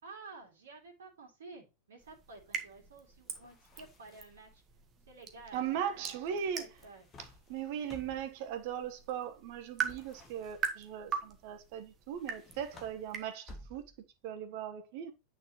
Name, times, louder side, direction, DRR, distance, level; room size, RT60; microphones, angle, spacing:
voice 1, 0.0-4.6 5.1-7.1, right 3 dB, 65° right, 2.8 m, -52 dB
sound 1, 2.0-13.3, right 7 dB, 25° right, 1.5 m, -43 dB
sound 2, 3.3-4.5 6.5-8.4 9.8-10.9 12.1-14.1, left 2 dB, 25° left, 2.1 m, -56 dB
voice 2, 5.5-6.7 7.2-13.8 14.2-15.1, right 9 dB, 50° right, 1.3 m, -38 dB
9.0 x 6.7 x 3.1 m
figure-of-eight pair, 90°, 0 cm